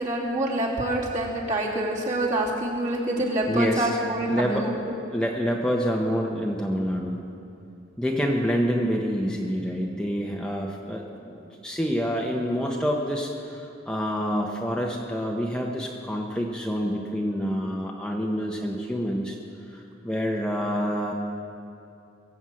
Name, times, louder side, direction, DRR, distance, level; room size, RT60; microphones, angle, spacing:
voice 1, 0.0-4.9, right 1 dB, 40° right, -4 dB, 2.8 m, -26 dB
voice 2, 3.5-3.9 4.3-4.7 5.1-7.2 8.0-11.4 11.6-19.4 19.7-21.1, equal, 5° left, -1 dB, 1.0 m, -27 dB
22.0 x 8.1 x 7.6 m, 2.6 s
head